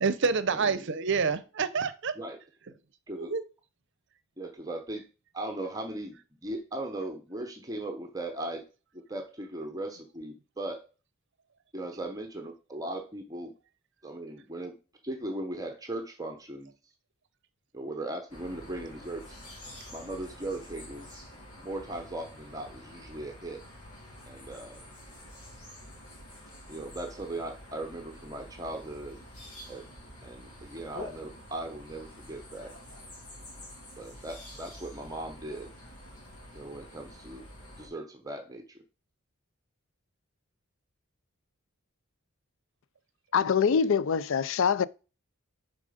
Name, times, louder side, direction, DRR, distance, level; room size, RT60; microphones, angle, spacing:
voice 1, 0.0-2.1 3.1-3.4, right 5 dB, 60° right, 0.7 m, -27 dB
voice 2, 0.5-0.9 2.2-2.4 3.1-3.3 4.4-5.0 5.3-6.2 6.4-8.6 8.9-10.8 11.7-13.5 14.0-14.7 15.0-16.7 17.7-19.4 19.9-21.2 21.6-23.6 24.3-24.8 26.7-29.3 29.7-29.8 30.2-32.7 34.0-35.7 36.5-37.5 37.8-38.8, right 1 dB, 15° right, 0.9 m, -38 dB
sound 1, 18.3-37.9, left 1 dB, 90° left, 2.6 m, -48 dB
voice 3, 43.3-44.9, left 6 dB, 60° left, 0.4 m, -24 dB
7.3 x 4.8 x 5.1 m
head